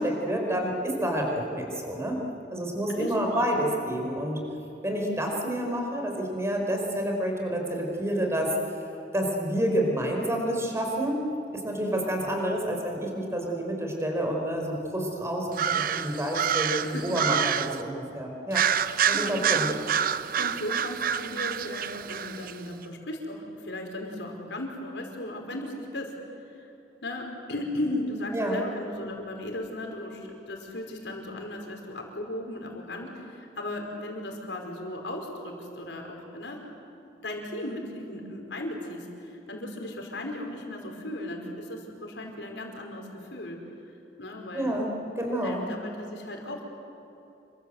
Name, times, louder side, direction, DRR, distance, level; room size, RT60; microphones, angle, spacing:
voice 1, 0.0-2.2 2.5-4.4 4.8-8.5 9.1-11.2 11.6-18.6 19.1-19.7 28.3-28.6 44.5-44.9 45.2-45.6, right 1 dB, 15° right, 1 dB, 4.9 m, -29 dB
voice 2, 2.9-3.3 16.8-17.0 19.1-19.5 20.4-26.1 26.5-26.7 27.0-36.6 36.9-43.6 44.2-45.1 45.4-46.6, left 1 dB, 80° left, 2 dB, 5.0 m, -36 dB
sound 1, 15.5-17.8 18.5-22.5, right 8 dB, 55° right, 0.7 m, -27 dB
28.0 x 24.0 x 8.0 m, 2.9 s
head